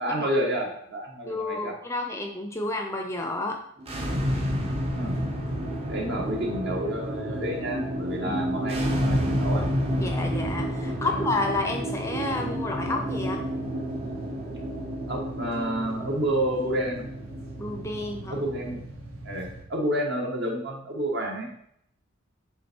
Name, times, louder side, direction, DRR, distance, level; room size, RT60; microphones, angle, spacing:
voice 1, 0.0-1.7 4.9-5.2 5.9-9.7 10.8-11.3 15.1-17.1 18.3-18.8 19.2-21.5, right 1 dB, 55° right, 0 dB, 1.5 m, -30 dB
voice 2, 1.2-3.6 8.2-8.7 10.0-13.4 17.6-18.4, left 2 dB, 15° left, 3 dB, 0.6 m, -30 dB
sound 1, 3.8-18.7, equal, 30° right, 0.8 m, -30 dB
sound 2, 4.1-19.6, right 2 dB, 85° right, 1.5 m, -40 dB
8.7 x 3.5 x 4.5 m, 0.71 s
head